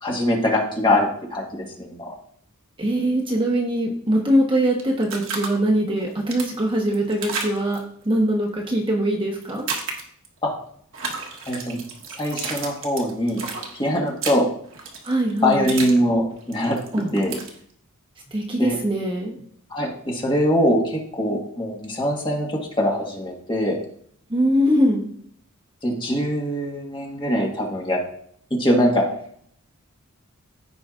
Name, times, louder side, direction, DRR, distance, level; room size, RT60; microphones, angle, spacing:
voice 1, 0.0-2.1 10.4-10.5 11.5-11.8 12.2-13.4 13.7-14.5 15.4-16.8 17.1-17.4 18.6-18.8 19.7-23.8 25.8-28.0 28.5-29.0, equal, 20° left, -1 dB, 1.6 m, -22 dB
voice 2, 2.8-7.8 8.0-9.6 15.0-15.7 16.9-17.1 18.3-19.4 24.3-25.0, right 1 dB, 25° right, 0 dB, 1.2 m, -22 dB
sound 1, 4.8-5.5 6.0-7.8 9.4-10.3 10.9-16.0 16.3-17.5, right 5 dB, 60° right, 1.4 m, -32 dB
15.0 x 5.0 x 2.5 m, 0.63 s
head